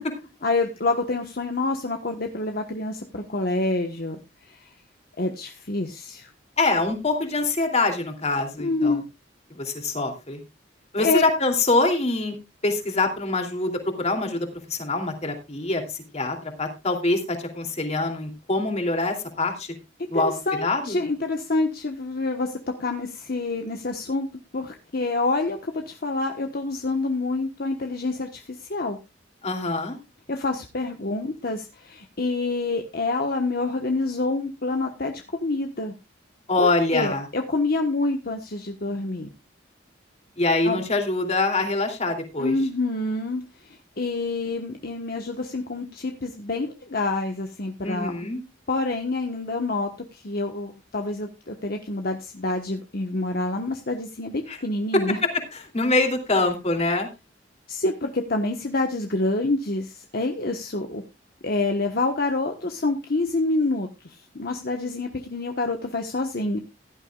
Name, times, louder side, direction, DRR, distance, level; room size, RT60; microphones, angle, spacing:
voice 1, 0.4-4.7 5.2-6.3 8.6-9.0 11.0-11.3 20.1-24.3 24.5-29.0 30.3-35.9 36.6-39.3 40.6-40.8 42.4-48.2 48.7-55.2 57.7-61.0 61.4-66.6, left 2 dB, 55° left, 4 dB, 1.3 m, -27 dB
voice 2, 6.6-9.0 9.5-10.4 10.9-12.3 12.6-19.7 20.1-20.3 20.6-21.0 29.4-30.0 36.5-37.2 40.4-42.5 47.8-48.4 54.5-54.6 55.7-57.1, left 2 dB, 35° left, 4 dB, 2.9 m, -24 dB
16.0 x 12.0 x 2.4 m, 0.26 s
head